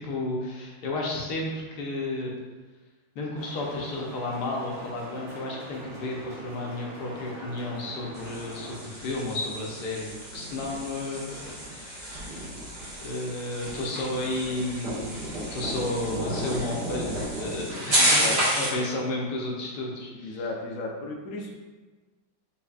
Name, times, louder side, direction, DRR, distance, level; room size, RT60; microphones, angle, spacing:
voice 1, 0.0-2.3 3.1-12.5 13.0-15.1 15.5-20.4, left 2 dB, 60° left, -2 dB, 1.2 m, -32 dB
sound 1, 3.4-8.8, right 1 dB, 85° right, 1.8 m, -43 dB
sound 2, 8.1-18.8, equal, 55° right, 2.1 m, -30 dB
voice 2, 18.0-18.4 20.1-21.5, left 2 dB, 80° left, 0 dB, 0.7 m, -35 dB
5.6 x 3.2 x 2.4 m, 1.3 s
omnidirectional pair, 2.2 m